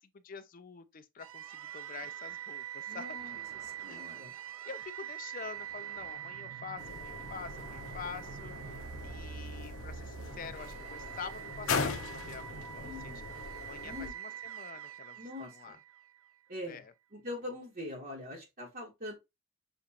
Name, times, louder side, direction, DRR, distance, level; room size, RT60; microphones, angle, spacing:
voice 1, 0.0-3.1 3.4-3.5 3.9-4.1 4.6-13.1 13.7-15.8 16.7-16.8, left 6 dB, 40° left, 0.5 m, -47 dB
sound 1, 1.2-16.3, right 9 dB, 80° right, 0.5 m, -44 dB
voice 2, 2.9-4.3 12.8-13.3 13.8-14.1 15.2-15.8 16.5-16.8 17.1-19.1, left 1 dB, 45° right, 1.1 m, -43 dB
sound 2, 6.8-14.1, left 5 dB, 90° left, 0.7 m, -40 dB
6.6 x 2.4 x 2.8 m
head